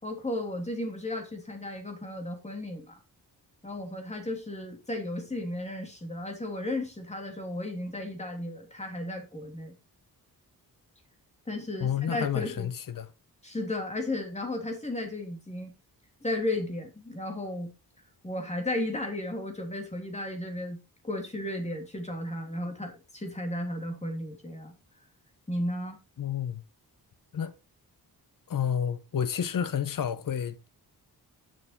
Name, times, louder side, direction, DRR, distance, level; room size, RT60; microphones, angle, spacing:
voice 1, 0.0-2.9 3.6-9.7 11.5-12.7 13.4-15.7 16.2-17.7 18.2-24.7 25.5-26.0, left 1 dB, 15° left, 3.0 m, -34 dB
voice 2, 11.8-13.1 26.2-26.6 27.3-27.5 28.5-30.7, left 8 dB, 55° left, 1.0 m, -30 dB
10.5 x 6.8 x 4.4 m
wide cardioid pair, 160°, 39 cm